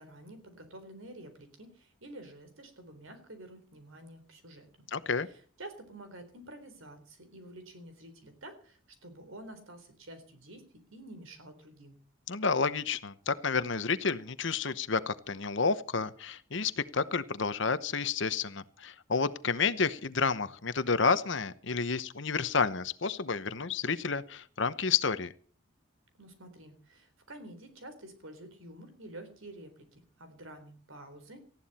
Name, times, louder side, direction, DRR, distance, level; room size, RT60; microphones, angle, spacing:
voice 1, 0.0-4.9 5.3-12.0 26.2-31.6, right 1 dB, 75° right, 9 dB, 4.0 m, -49 dB
voice 2, 4.9-5.3 12.3-25.3, left 5 dB, 60° left, 13 dB, 1.0 m, -30 dB
19.0 x 14.5 x 4.3 m, 0.42 s
head